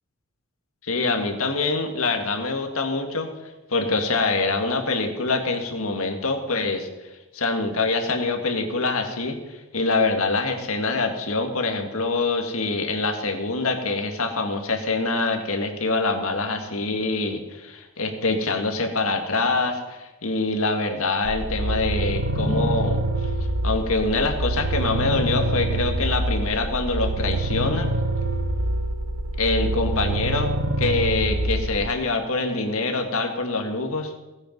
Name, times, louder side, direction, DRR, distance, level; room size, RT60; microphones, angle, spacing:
voice 1, 0.8-3.3 3.7-6.9 7.3-23.0 23.6-27.9 29.4-30.5 30.8-34.1, left 3 dB, 80° left, 4 dB, 1.9 m, -25 dB
sound 1, 21.2-31.9, right 1 dB, 75° right, 1.0 m, -25 dB
18.5 x 8.6 x 5.3 m, 1.1 s
head